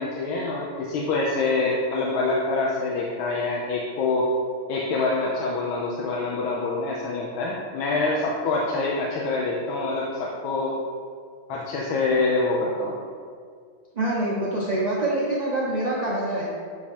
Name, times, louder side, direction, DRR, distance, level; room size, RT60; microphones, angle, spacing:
voice 1, 0.0-4.3 4.7-10.8 11.5-12.9, left 3 dB, 90° left, -3 dB, 1.5 m, -25 dB
voice 2, 13.9-16.6, right 1 dB, 55° right, -7 dB, 0.4 m, -25 dB
7.2 x 3.5 x 4.2 m, 2.1 s
omnidirectional pair, 2.1 m